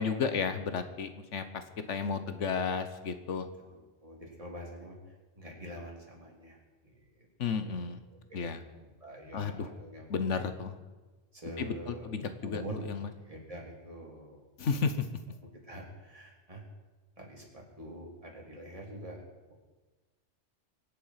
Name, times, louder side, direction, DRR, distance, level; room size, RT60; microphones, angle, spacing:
voice 1, 0.0-1.4 1.9-3.5 7.4-8.0 8.3-8.6 9.3-9.7 10.1-10.8 11.6-11.7 12.1-12.6 12.9-13.1 14.6-14.9, left 5 dB, 90° left, 9 dB, 1.4 m, -32 dB
voice 2, 3.7-7.3 7.6-10.2 11.3-12.1 12.4-14.5 15.4-16.6 17.2-19.2, right 1 dB, 30° right, -2 dB, 3.4 m, -46 dB
24.0 x 8.4 x 5.8 m, 1.2 s
omnidirectional pair, 1.2 m